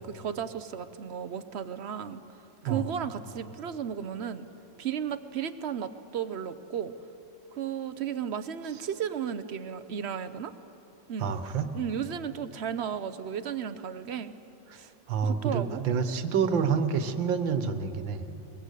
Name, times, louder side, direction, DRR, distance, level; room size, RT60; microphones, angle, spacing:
voice 1, 0.0-2.2 2.6-4.5 4.8-6.9 7.5-10.5 11.1-11.3 11.7-14.3 14.7-14.9 15.2-15.8, right 8 dB, 60° right, 12 dB, 0.7 m, -34 dB
voice 2, 11.2-11.7 14.7-14.8 15.1-18.3, right 6 dB, 80° right, 10 dB, 1.9 m, -28 dB
23.0 x 21.5 x 8.3 m, 3.0 s
omnidirectional pair, 2.0 m